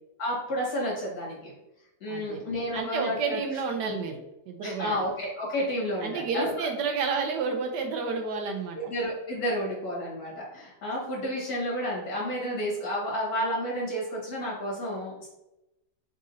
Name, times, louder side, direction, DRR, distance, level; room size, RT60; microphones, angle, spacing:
voice 1, 0.2-1.5 2.0-3.4 3.8-3.9 4.6-6.7 8.8-15.3, equal, 55° left, -5 dB, 2.1 m, -31 dB
voice 2, 2.1-2.4 2.7-5.0 6.0-8.9, right 5 dB, 75° right, 3 dB, 1.2 m, -30 dB
4.2 x 3.6 x 2.7 m, 0.92 s
omnidirectional pair, 1.9 m